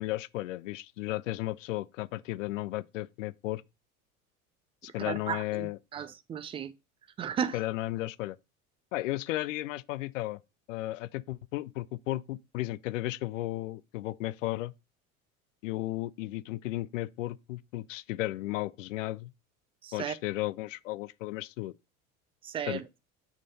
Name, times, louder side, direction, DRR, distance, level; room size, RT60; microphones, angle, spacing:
voice 1, 0.0-3.6 4.8-5.8 7.5-8.4 8.9-10.4 10.7-14.7 15.6-19.3 19.9-21.7 22.6-22.8, left 17 dB, 60° left, 0.5 m, -34 dB
voice 2, 5.0-5.7 5.9-6.7 7.2-7.6 19.8-20.1 22.4-22.8, right 8 dB, 15° right, 0.3 m, -34 dB
7.5 x 3.7 x 4.1 m
figure-of-eight pair, 70°, 43 cm